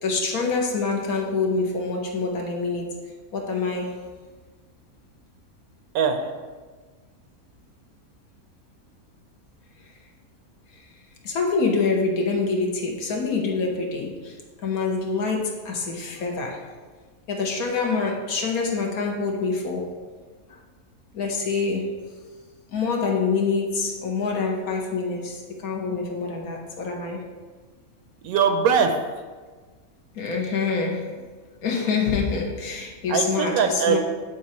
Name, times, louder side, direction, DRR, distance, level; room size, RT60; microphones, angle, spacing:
voice 1, 0.0-2.9 3.3-4.0 10.7-10.8 11.2-14.4 14.6-16.7 17.3-19.9 20.5-20.6 21.1-21.9 22.7-27.2 30.1-31.1 31.6-34.0, left 4 dB, 80° left, 0 dB, 1.5 m, -26 dB
voice 2, 5.9-6.3 28.2-28.9 33.1-34.0, right 6 dB, 90° right, 6 dB, 1.2 m, -21 dB
8.4 x 3.8 x 4.2 m, 1.4 s
omnidirectional pair, 1.5 m